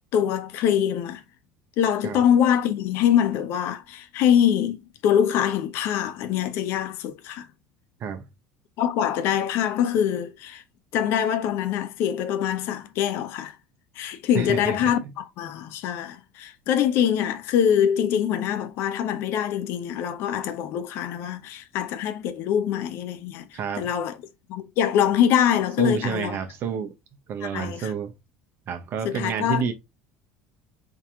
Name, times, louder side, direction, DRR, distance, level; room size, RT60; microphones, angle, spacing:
voice 1, 0.1-1.2 1.8-7.5 8.8-10.6 10.9-13.6 14.0-24.2 24.5-26.4 27.5-27.9 29.0-29.7, left 9 dB, 65° left, 0.7 m, -24 dB
voice 2, 14.3-14.9 23.5-23.9 25.8-26.9 27.3-28.1 28.7-29.7, right 6 dB, 50° right, 0.9 m, -29 dB
3.8 x 2.9 x 3.5 m
supercardioid pair, 85°, 5 cm